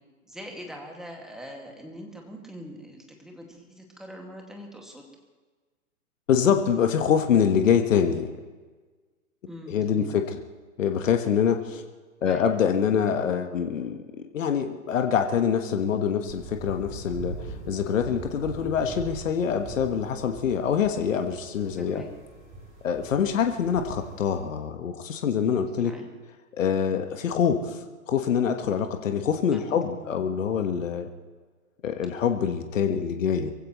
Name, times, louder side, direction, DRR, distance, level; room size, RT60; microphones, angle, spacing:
voice 1, 0.3-5.0 9.5-10.2 12.2-12.4 21.8-22.1 25.8-26.1 29.5-30.2, equal, ahead, 1 dB, 2.1 m, -42 dB
voice 2, 6.3-8.3 9.7-10.4 10.8-11.8 12.2-14.0 14.3-22.0 22.8-25.9 26.5-27.8 28.1-31.1 31.8-33.5, left 7 dB, 65° left, 6 dB, 1.5 m, -25 dB
sound 1, 16.3-24.4, right 2 dB, 20° right, 4.1 m, -42 dB
23.5 x 16.0 x 3.1 m, 1.4 s
figure-of-eight pair, 120°, 42 cm